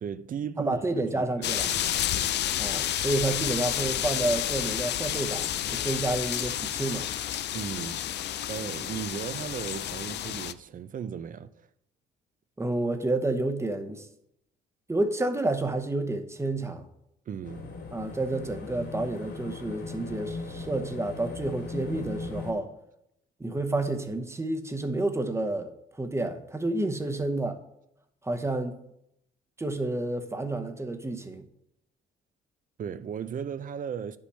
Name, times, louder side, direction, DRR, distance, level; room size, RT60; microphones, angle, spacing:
voice 1, 0.0-2.4 7.5-8.0 8.5-11.7 17.3-17.7 32.8-34.2, right 8 dB, 45° right, 0.5 m, -36 dB
voice 2, 0.6-1.7 2.6-7.1 12.6-14.1 14.9-16.9 17.9-22.7 23.4-25.7 26.0-27.6 28.2-28.8 29.6-31.4, right 2 dB, 15° right, 0.8 m, -30 dB
Tree Rustle Bike, 1.4-10.5, left 11 dB, 60° left, 0.4 m, -30 dB
sound 1, 17.4-22.5, left 3 dB, 80° left, 2.7 m, -38 dB
9.7 x 5.4 x 3.3 m
cardioid pair, 90°, 20 cm